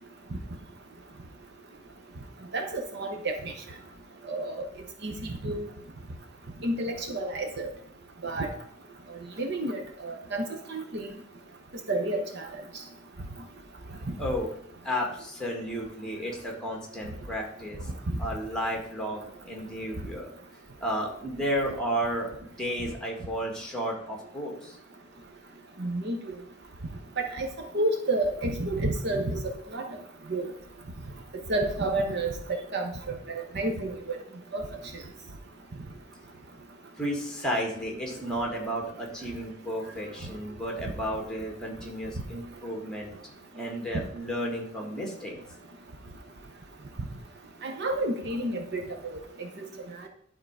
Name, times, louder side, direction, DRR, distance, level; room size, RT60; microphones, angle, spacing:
voice 1, 2.5-3.5 4.3-4.7 5.0-5.7 6.6-7.7 8.2-8.5 9.4-11.1 11.9-12.5 14.1-14.2 25.8-26.2 27.2-27.5 27.7-29.4 29.7-29.8 30.3-30.4 31.5-32.3 32.7-34.2 34.5-34.6 47.6-49.7, right 2 dB, 55° right, 4 dB, 0.9 m, -30 dB
voice 2, 14.2-14.5 14.8-17.9 18.2-20.3 20.8-24.8 37.0-45.4, equal, 5° left, 0 dB, 1.7 m, -33 dB
11.0 x 3.8 x 4.7 m, 0.65 s
head